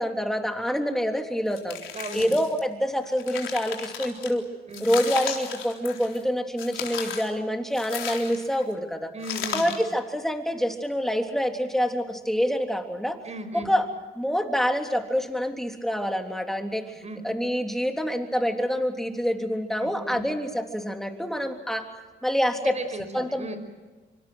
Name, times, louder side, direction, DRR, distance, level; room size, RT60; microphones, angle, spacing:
voice 1, 0.0-1.8 2.1-4.5 4.8-9.1 9.5-13.2 13.5-13.9 14.1-21.9 22.2-23.5, equal, ahead, 4 dB, 3.3 m, -26 dB
sound 1, 1.5-2.6 3.0-4.3 4.7-6.2 6.6-7.3 7.7-8.6 9.2-9.9, left 8 dB, 80° left, 3.9 m, -35 dB
voice 2, 1.9-2.4 4.7-4.9 9.1-9.7 13.2-13.7 17.0-17.2 19.8-20.3 22.6-23.6, right 2 dB, 35° right, 9 dB, 5.2 m, -36 dB
25.0 x 24.5 x 6.4 m, 1.3 s
cardioid pair, 90°, 20 cm